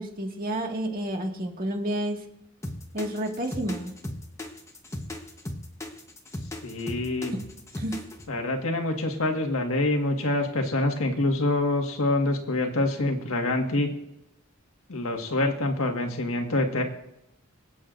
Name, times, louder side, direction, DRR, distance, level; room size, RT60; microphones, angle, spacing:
voice 1, 0.0-2.2 2.9-3.9 7.3-7.4 7.8-8.0, right 1 dB, 45° right, 2 dB, 1.8 m, -30 dB
sound 1, 2.6-8.3, left 1 dB, 15° left, 1.1 m, -36 dB
voice 2, 6.6-7.4 8.3-13.9 14.9-16.8, left 2 dB, 85° left, 3 dB, 1.7 m, -26 dB
25.0 x 8.6 x 2.6 m, 0.86 s
head